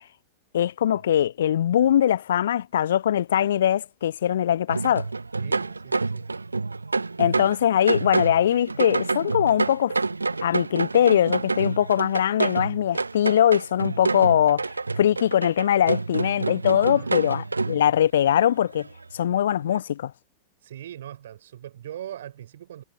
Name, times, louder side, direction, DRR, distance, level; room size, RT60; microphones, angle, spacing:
voice 1, 0.5-5.1 7.2-9.9 10.4-14.7 15.0-18.9 19.1-20.1, left 10 dB, 60° left, 0.6 m, -21 dB
sound 1, 4.7-17.9 18.3-18.4 18.8-19.2 19.7-19.8, right 3 dB, 80° right, 0.4 m, -28 dB
voice 2, 5.4-6.3 16.9-17.1 20.6-22.8, right 11 dB, 60° right, 5.6 m, -40 dB
figure-of-eight pair, 90°, 0 cm